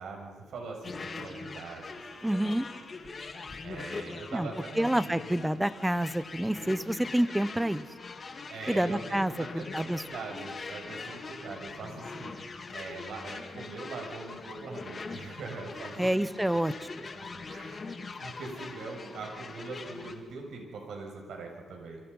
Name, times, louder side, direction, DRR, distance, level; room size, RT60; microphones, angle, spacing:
voice 1, 0.0-2.1 2.3-2.6 3.6-5.2 8.5-12.3 12.7-16.1 16.5-16.6 17.2-17.9 18.2-22.0, right 3 dB, 75° right, 1 dB, 7.0 m, -42 dB
sound 1, 0.8-20.1, left 4 dB, 35° left, 2.6 m, -42 dB
voice 2, 2.2-2.6 4.3-4.5 4.8-7.8 8.7-10.0 16.0-16.7, right 1 dB, 5° right, 15 dB, 1.0 m, -28 dB
29.0 x 26.5 x 5.6 m, 1.3 s
cardioid pair, 115°, 0 cm